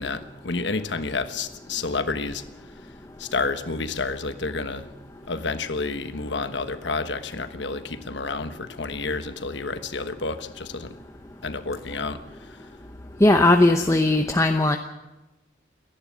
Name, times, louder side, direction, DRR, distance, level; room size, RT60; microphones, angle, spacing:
voice 1, 0.0-2.4 3.2-4.9 5.3-10.9 11.4-12.6, left 3 dB, 70° left, 10 dB, 1.3 m, -30 dB
voice 2, 13.2-14.8, left 2 dB, 15° left, 5 dB, 0.8 m, -18 dB
29.0 x 11.0 x 8.5 m, 1.1 s
head